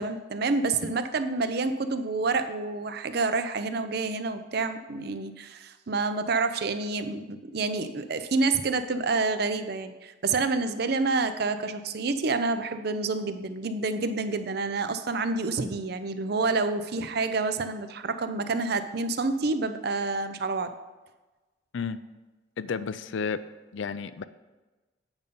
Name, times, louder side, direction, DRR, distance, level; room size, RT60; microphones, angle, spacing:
voice 1, 0.0-20.7, right 3 dB, 55° right, 10 dB, 0.5 m, -28 dB
voice 2, 22.6-23.4 23.7-24.2, left 5 dB, 70° left, 14 dB, 0.4 m, -31 dB
8.8 x 5.3 x 5.3 m, 1.2 s
head